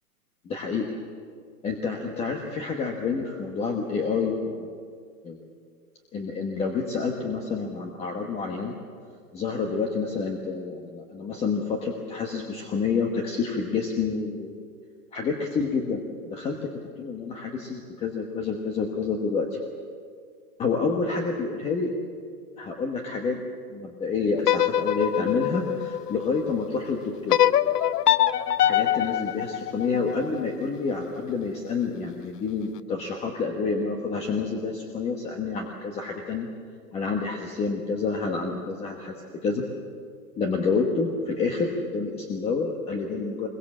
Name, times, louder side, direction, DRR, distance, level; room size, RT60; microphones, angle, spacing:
voice 1, 0.4-1.0 1.6-4.7 5.2-5.4 6.1-8.7 9.3-14.5 15.1-16.6 17.0-19.6 20.6-21.9 22.6-23.4 23.7-27.4 28.7-36.5 36.9-39.6 40.4-43.5, left 4 dB, 15° left, 3 dB, 1.2 m, -28 dB
sound 1, 24.4-26.6 27.3-30.4, left 11 dB, 80° left, 0.9 m, -24 dB
25.5 x 22.0 x 7.5 m, 2.2 s
hypercardioid pair, 160°, 46 cm